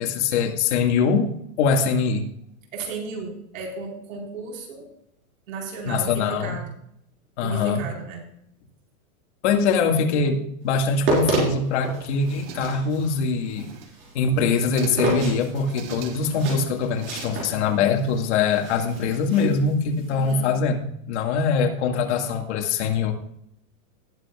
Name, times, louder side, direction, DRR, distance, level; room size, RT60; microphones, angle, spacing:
voice 1, 0.0-2.3 5.9-6.6 7.4-7.8 9.4-13.7 14.1-23.1, left 5 dB, 50° left, 2 dB, 2.1 m, -23 dB
voice 2, 2.7-4.9 5.5-6.6 7.4-8.2 20.1-20.4, right 4 dB, 70° right, -1 dB, 4.6 m, -34 dB
sound 1, 10.8-20.3, right 2 dB, 30° right, 4.3 m, -30 dB
sound 2, 10.9-11.8 12.2-13.1 13.4-14.1 14.4-15.2 15.6-16.5 16.8-17.8, right 7 dB, 45° right, 1.3 m, -42 dB
19.0 x 7.8 x 2.4 m, 0.75 s
supercardioid pair, 170°, 42 cm